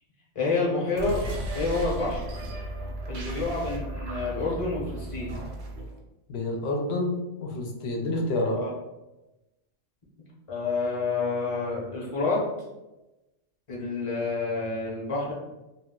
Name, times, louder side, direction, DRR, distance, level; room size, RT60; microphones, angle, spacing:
voice 1, 0.3-1.2 1.5-2.2 3.1-5.3 8.5-8.7 10.5-12.4 13.7-15.3, left 3 dB, 30° left, -4 dB, 0.8 m, -28 dB
sound 1, 0.9-6.0, right 1 dB, 70° right, 0.9 m, -35 dB
voice 2, 6.3-8.6, left 2 dB, 65° left, 1 dB, 0.8 m, -28 dB
2.3 x 2.2 x 3.6 m, 1.0 s
omnidirectional pair, 1.3 m